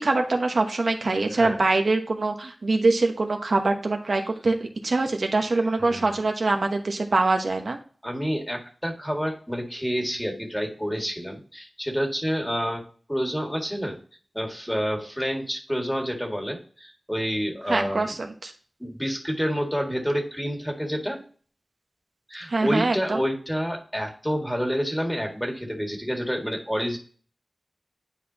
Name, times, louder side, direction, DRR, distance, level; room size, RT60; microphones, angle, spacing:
voice 1, 0.0-7.8 17.7-18.5 22.5-23.2, right 3 dB, 75° right, 4 dB, 1.0 m, -24 dB
voice 2, 5.8-6.2 8.0-12.8 13.1-14.0 14.3-18.1 18.8-21.2 22.3-27.0, equal, 5° left, 2 dB, 1.8 m, -28 dB
10.0 x 4.2 x 2.8 m, 0.41 s
wide cardioid pair, 80°, 0 cm